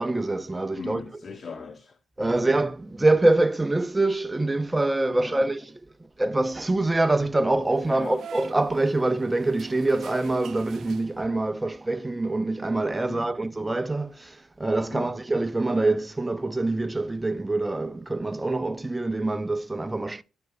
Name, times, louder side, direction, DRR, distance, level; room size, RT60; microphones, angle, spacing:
voice 1, 0.0-1.0 2.2-5.7 6.2-20.2, right 2 dB, 20° right, 0.6 m, -25 dB
voice 2, 0.7-2.5 5.1-5.5 7.9-8.2 13.0-13.3 14.9-15.2, left 4 dB, 50° left, 1.1 m, -39 dB
sound 1, 7.6-11.5, right 7 dB, 60° right, 0.7 m, -46 dB
12.0 x 10.5 x 2.2 m
hypercardioid pair, 40°, 0 cm